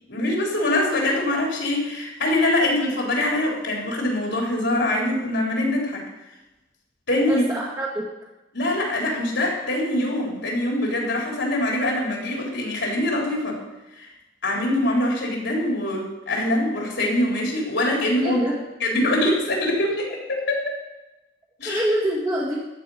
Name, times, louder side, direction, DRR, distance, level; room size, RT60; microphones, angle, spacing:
voice 1, 0.1-6.0 7.1-7.5 8.5-13.6 13.9-14.1 14.4-18.4 18.8-20.8 21.6-21.8, left 1 dB, 70° left, -2 dB, 4.0 m, -23 dB
voice 2, 7.3-8.1 18.2-18.5 21.6-22.6, right 1 dB, 20° right, -5 dB, 1.7 m, -25 dB
13.5 x 5.3 x 9.2 m, 1.0 s
head